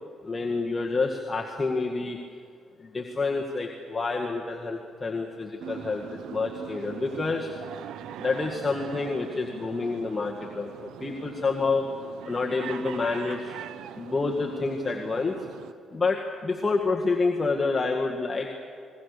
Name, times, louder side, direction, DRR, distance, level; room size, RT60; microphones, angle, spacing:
voice 1, 0.2-2.2 2.8-7.5 8.2-11.9 12.2-13.5 13.9-15.4 15.9-18.6, left 3 dB, 25° left, -1 dB, 2.0 m, -28 dB
sound 1, 5.6-15.7, right 10 dB, 85° right, 0.8 m, -41 dB
27.0 x 21.5 x 6.9 m, 2.2 s
cardioid pair, 90°, 0 cm